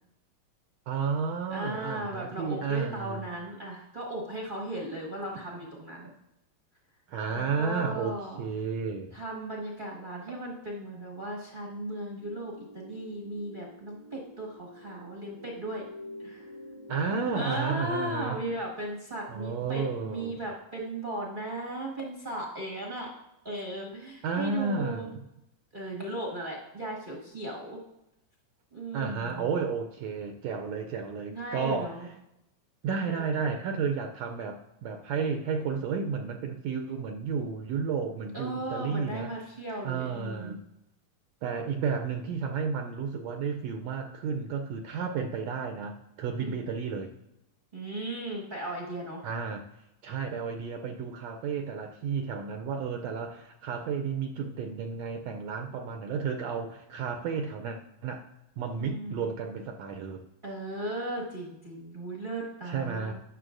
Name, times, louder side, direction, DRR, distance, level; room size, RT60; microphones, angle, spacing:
voice 1, 0.9-3.2 7.1-9.1 16.9-18.4 19.3-20.4 24.2-25.2 28.9-32.0 32.8-39.3 39.8-40.6 41.4-47.1 49.2-49.6 50.0-58.3 58.6-60.2 62.7-63.1, right 5 dB, 80° right, 4 dB, 1.6 m, -32 dB
voice 2, 1.5-6.1 7.3-8.4 9.1-15.9 16.2-16.5 17.3-23.1 23.4-25.1 25.7-27.8 28.7-29.5 31.3-32.1 33.0-33.2 38.3-40.6 46.4-46.6 47.7-49.2 58.8-59.2 60.4-63.1, right 1 dB, 35° right, -4 dB, 0.8 m, -36 dB
sound 1, 12.2-18.0, left 1 dB, 50° left, 1.9 m, -46 dB
12.5 x 9.6 x 2.5 m, 0.89 s
omnidirectional pair, 3.4 m